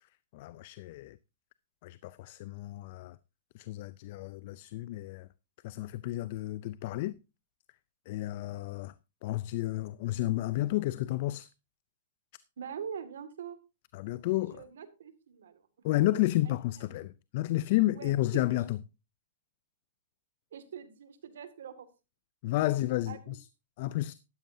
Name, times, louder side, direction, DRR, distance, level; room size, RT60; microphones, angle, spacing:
voice 1, 0.3-1.2 1.8-3.2 3.5-5.3 5.6-7.2 8.1-8.9 9.2-11.5 13.9-14.6 15.8-18.8 22.4-23.5 23.8-24.1, left 16 dB, 50° left, 0.5 m, -31 dB
voice 2, 12.6-13.6 14.3-15.6 16.9-17.1 17.9-18.6 20.5-21.9 23.1-23.4, right 8 dB, 75° right, 2.1 m, -43 dB
13.0 x 12.5 x 2.7 m
hypercardioid pair, 135°, 0 cm